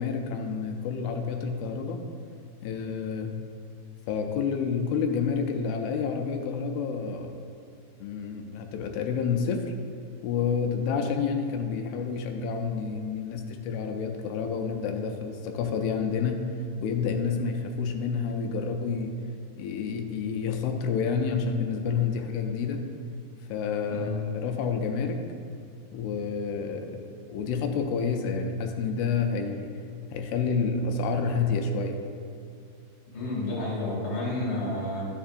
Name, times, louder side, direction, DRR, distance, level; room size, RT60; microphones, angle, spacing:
voice 1, 0.0-2.0 2.6-3.3 4.1-7.3 8.0-9.7 10.2-16.5 16.8-19.1 19.6-22.9 23.5-25.2 25.9-27.0 27.3-29.7 30.1-32.0, left 5 dB, 85° left, 4 dB, 2.6 m, -29 dB
voice 2, 33.1-35.1, left 1 dB, 25° left, -5 dB, 1.6 m, -30 dB
11.5 x 7.1 x 2.5 m, 2.3 s
omnidirectional pair, 4.5 m